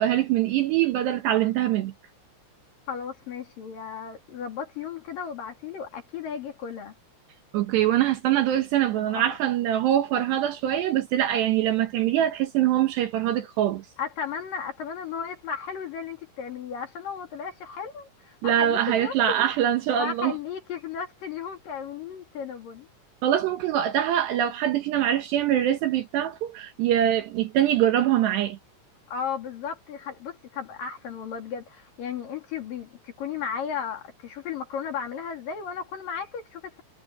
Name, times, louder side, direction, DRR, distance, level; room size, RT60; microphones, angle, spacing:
voice 1, 0.0-1.9 7.5-13.8 18.4-20.3 23.2-28.6, right 11 dB, 70° right, 2.9 m, -23 dB
voice 2, 2.9-6.9 9.0-9.4 14.0-19.5 20.0-22.9 29.1-36.8, left 7 dB, 50° left, 3.6 m, -35 dB
omnidirectional pair, 5.8 m